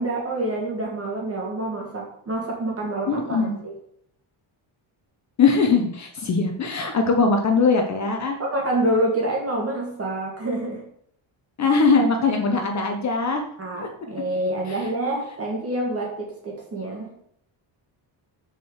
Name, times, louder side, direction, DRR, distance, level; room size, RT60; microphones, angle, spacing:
voice 1, 0.0-3.7 8.4-10.8 13.6-17.1, right 1 dB, 30° right, -1 dB, 1.9 m, -27 dB
voice 2, 3.1-3.5 5.4-8.4 11.6-13.4, left 4 dB, 35° left, 4 dB, 0.9 m, -21 dB
6.4 x 4.6 x 6.4 m, 0.68 s
cardioid pair, 175°, 47 cm